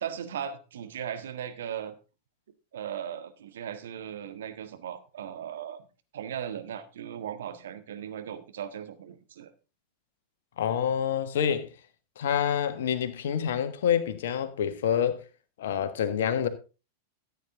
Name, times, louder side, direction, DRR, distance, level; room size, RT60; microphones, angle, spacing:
voice 1, 0.0-1.9 2.7-5.8 6.1-9.5, right 9 dB, 60° right, 1.5 m, -37 dB
voice 2, 10.6-11.7 12.2-15.2 15.6-16.5, left 8 dB, 60° left, 1.4 m, -27 dB
14.0 x 8.5 x 3.8 m
figure-of-eight pair, 90°, 0 cm